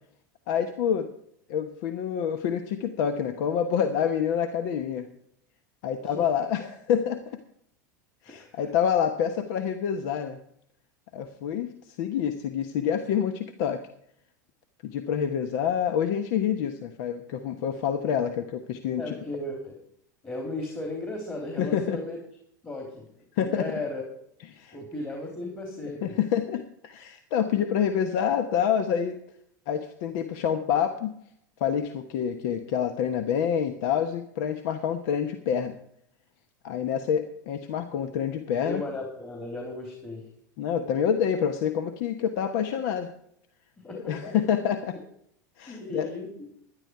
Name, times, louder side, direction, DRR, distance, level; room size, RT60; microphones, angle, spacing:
voice 1, 0.5-1.1 1.5-5.1 5.8-7.4 8.2-10.4 11.1-13.8 14.8-19.1 21.6-22.0 23.3-23.7 24.5-24.8 26.0-29.2 29.7-31.1 31.6-35.7 36.6-38.8 40.6-43.1 43.9-45.0 45.6-46.1, left 8 dB, 65° left, 9 dB, 1.0 m, -27 dB
voice 2, 8.3-8.6 19.0-19.8 20.2-22.2 22.6-23.1 23.4-24.1 24.7-26.2 38.6-40.2 43.8-44.1 45.6-46.5, left 2 dB, 20° left, 1 dB, 3.4 m, -35 dB
12.5 x 11.0 x 4.7 m, 0.71 s
hypercardioid pair, 95°, 10 cm